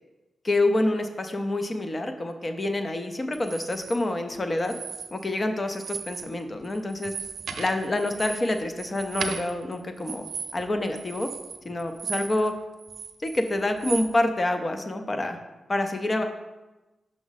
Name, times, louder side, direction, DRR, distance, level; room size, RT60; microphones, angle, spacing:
voice 1, 0.4-4.8 5.1-7.1 7.6-10.3 10.5-11.3 11.7-12.5 13.2-15.4 15.7-16.2, left 1 dB, 25° left, 6 dB, 0.5 m, -27 dB
sound 1, 3.3-4.0 4.6-5.4 5.7-6.3 6.6-12.5 12.8-14.1, right 6 dB, 75° right, 0.6 m, -36 dB
6.2 x 5.9 x 3.9 m, 1.1 s
wide cardioid pair, 175°, 0 cm